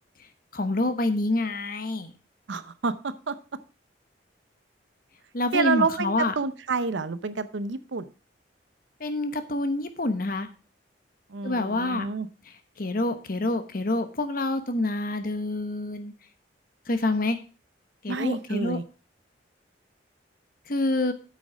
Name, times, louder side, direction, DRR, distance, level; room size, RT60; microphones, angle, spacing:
voice 1, 0.5-2.1 5.3-6.3 9.0-10.5 11.4-12.1 12.8-16.1 16.9-17.4 18.0-18.8 20.7-21.1, left 2 dB, 50° left, 9 dB, 1.0 m, -27 dB
voice 2, 2.5-3.3 5.5-8.1 11.3-12.3 18.1-18.8, right 4 dB, 75° right, 14 dB, 0.7 m, -28 dB
8.6 x 6.3 x 5.0 m, 0.35 s
head